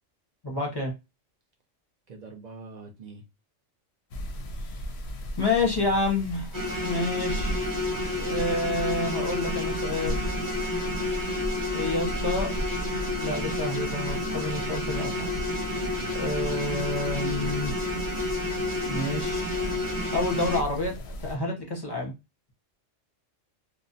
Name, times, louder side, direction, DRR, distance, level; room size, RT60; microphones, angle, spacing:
voice 1, 0.4-0.9 5.4-6.5 6.8-7.7 8.2-10.2 11.7-12.5 13.2-15.3 16.1-17.7 18.9-19.5 20.1-22.1, left 2 dB, 25° left, 0.6 m, -29 dB
voice 2, 2.1-3.2 15.9-16.4, right 3 dB, 55° right, 0.5 m, -45 dB
sound 1, 4.1-21.4, equal, 65° left, 0.7 m, -36 dB
sound 2, 6.5-20.6, left 2 dB, 20° right, 0.7 m, -30 dB
2.6 x 2.1 x 2.6 m
omnidirectional pair, 1.3 m